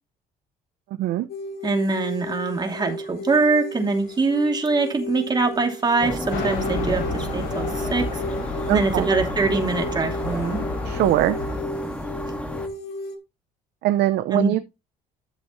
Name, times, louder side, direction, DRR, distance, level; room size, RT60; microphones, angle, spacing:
sound 1, 1.3-13.2, left 1 dB, 70° left, 2.4 m, -34 dB
voice 1, 1.6-8.1 8.7-10.6 14.3-14.5, right 3 dB, 25° right, 2.7 m, -23 dB
sound 2, 6.0-12.7, left 1 dB, 5° left, 1.9 m, -31 dB
sound 3, 6.3-11.6, left 3 dB, 85° left, 6.0 m, -32 dB
voice 2, 8.7-9.1 10.9-11.4 13.8-14.6, right 14 dB, 75° right, 0.7 m, -21 dB
12.0 x 7.0 x 3.0 m
cardioid pair, 110°, 17 cm